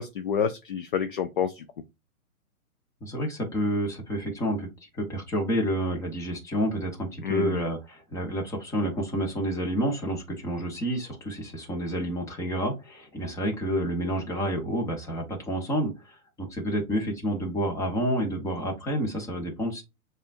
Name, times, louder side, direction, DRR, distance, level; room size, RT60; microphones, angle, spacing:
voice 1, 0.0-1.6 7.2-7.6, left 7 dB, 40° left, 0.4 m, -28 dB
voice 2, 3.0-19.8, equal, 5° left, 1.0 m, -29 dB
7.1 x 2.5 x 2.5 m
hypercardioid pair, 135°, 43 cm